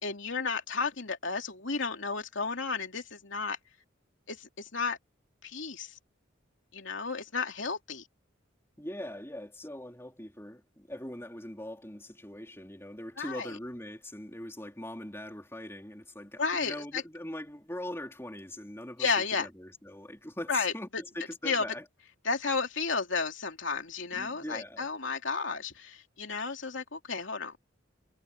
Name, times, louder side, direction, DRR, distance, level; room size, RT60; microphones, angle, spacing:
voice 1, 0.0-3.6 4.3-5.0 5.4-5.9 6.7-8.0 13.2-13.5 16.4-17.0 19.0-19.5 20.5-21.0 21.4-21.6 22.2-27.5, left 4 dB, 75° left, 2.8 m, -32 dB
voice 2, 8.8-21.8 24.1-24.9, left 1 dB, 15° left, 4.2 m, -41 dB
head